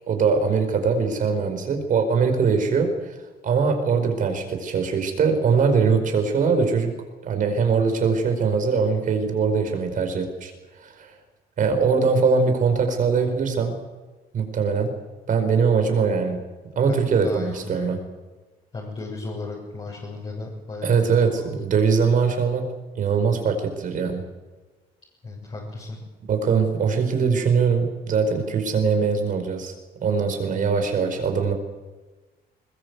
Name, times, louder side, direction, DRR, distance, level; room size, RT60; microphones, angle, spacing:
voice 1, 0.1-3.2 3.4-6.9 7.2-10.5 10.8-11.1 11.6-13.8 14.3-14.9 15.3-16.4 16.7-18.0 20.8-22.7 22.9-24.2 26.3-29.7 30.0-31.5, right 5 dB, 50° right, 5 dB, 5.0 m, -22 dB
voice 2, 16.9-17.9 18.7-21.7 25.2-26.0 30.4-30.6, left 3 dB, 30° left, -5 dB, 7.3 m, -35 dB
21.5 x 21.0 x 8.3 m, 1.3 s
cardioid pair, 110°, 17 cm